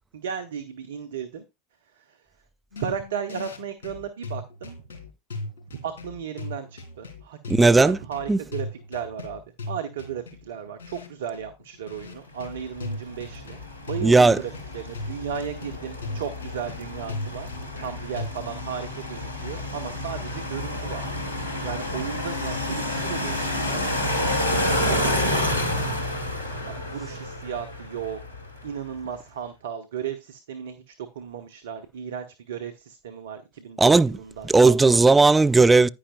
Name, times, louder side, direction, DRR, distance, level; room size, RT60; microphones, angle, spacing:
voice 1, 0.1-1.4 1.8-2.3 2.8-4.7 5.8-9.4 9.7-17.5 17.8-21.0 21.6-26.1 26.6-28.2 28.6-35.0, right 7 dB, 65° right, 1.0 m, -35 dB
sound 1, 2.7-18.3, left 2 dB, 65° left, 3.5 m, -38 dB
voice 2, 7.5-8.0 8.3-8.4 14.0-14.4 33.8-34.1 34.4-35.9, right 3 dB, 10° right, 0.5 m, -16 dB
sound 2, 12.6-28.7, left 1 dB, 90° right, 1.8 m, -29 dB
10.0 x 10.0 x 2.5 m
figure-of-eight pair, 85°, 0 cm